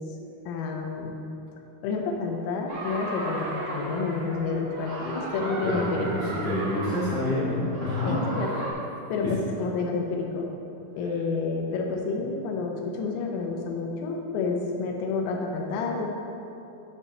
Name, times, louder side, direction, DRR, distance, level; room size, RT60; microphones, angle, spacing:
voice 1, 0.5-1.1 1.8-6.3 8.0-8.6 9.1-10.5 11.0-16.1, left 4 dB, 90° left, 1 dB, 3.6 m, -29 dB
sound 1, 2.7-8.7, right 1 dB, 65° right, 1.5 m, -35 dB
voice 2, 5.7-8.1, left 1 dB, 70° left, -11 dB, 1.0 m, -28 dB
8.4 x 5.5 x 6.4 m, 2.8 s
omnidirectional pair, 5.9 m